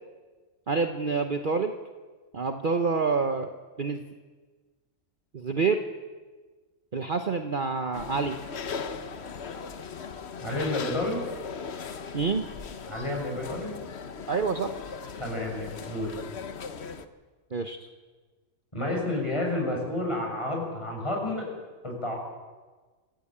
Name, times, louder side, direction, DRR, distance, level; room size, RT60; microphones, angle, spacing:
voice 1, 0.7-1.7 2.3-3.5 3.8-4.0 5.3-5.8 6.9-8.4 12.1-12.5 14.3-14.7 17.5-17.9, right 4 dB, 40° right, 6 dB, 1.1 m, -27 dB
sound 1, 7.9-17.1, left 5 dB, 55° left, 1.3 m, -38 dB
voice 2, 10.4-11.3 12.9-13.7 15.2-16.1 18.7-21.5 21.8-22.2, left 1 dB, 20° left, -1 dB, 6.8 m, -30 dB
26.5 x 14.5 x 8.8 m, 1.4 s
omnidirectional pair, 1.4 m